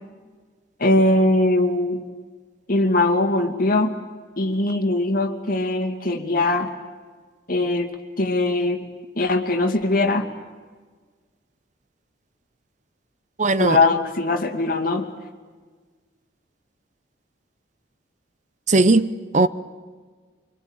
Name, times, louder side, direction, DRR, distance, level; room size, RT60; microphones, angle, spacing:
voice 1, 0.8-2.0 2.7-3.9 4.4-6.7 7.5-7.9 8.2-8.8 9.2-10.3 13.6-15.1, left 2 dB, 50° left, 2.5 m, -21 dB
voice 2, 13.4-13.8 18.7-19.5, right 2 dB, 40° right, 0.8 m, -18 dB
25.0 x 25.0 x 8.9 m
head